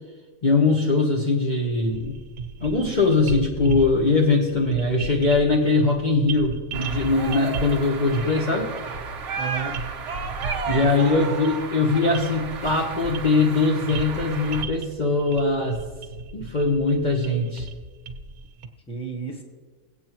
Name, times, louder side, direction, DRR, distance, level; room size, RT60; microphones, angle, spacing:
voice 1, 0.4-2.1 2.6-8.7 10.7-15.8 16.3-17.7, left 3 dB, 35° left, -2 dB, 1.2 m, -21 dB
sound 1, 1.9-18.7, right 3 dB, 75° right, 1.4 m, -36 dB
sound 2, 6.7-14.6, right 5 dB, 60° right, 1.1 m, -33 dB
voice 2, 9.4-9.8 10.5-11.3 18.9-19.4, right 3 dB, 5° left, 0 dB, 1.3 m, -32 dB
19.0 x 8.5 x 3.0 m, 1.4 s
omnidirectional pair, 1.5 m